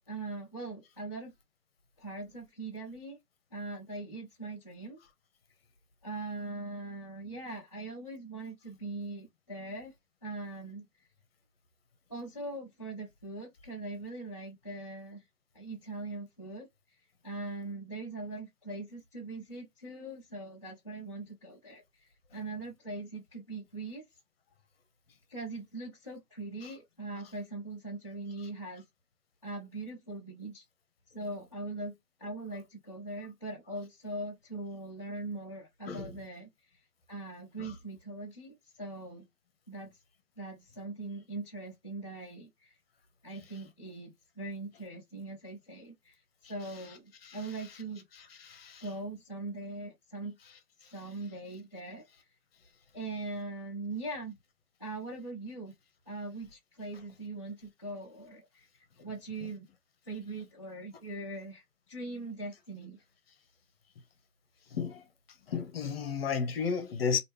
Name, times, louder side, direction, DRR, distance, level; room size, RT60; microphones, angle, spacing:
voice 1, 0.1-1.3 2.0-3.2 3.5-5.0 6.0-9.9 10.2-10.9 12.1-15.2 15.5-17.0 17.2-24.1 25.3-28.8 29.4-30.7 31.1-36.8 37.1-39.2 39.7-40.0 40.4-42.8 43.2-48.0 48.8-50.4 50.9-52.1 52.9-54.3 54.8-55.7 56.1-59.7 60.0-63.0, right 2 dB, 20° left, 0.4 m, -41 dB
voice 2, 48.1-48.9 50.8-50.9 64.7-65.1 65.5-67.2, left 6 dB, 40° left, 0.9 m, -34 dB
3.4 x 2.5 x 3.2 m
hypercardioid pair, 150°, 45 cm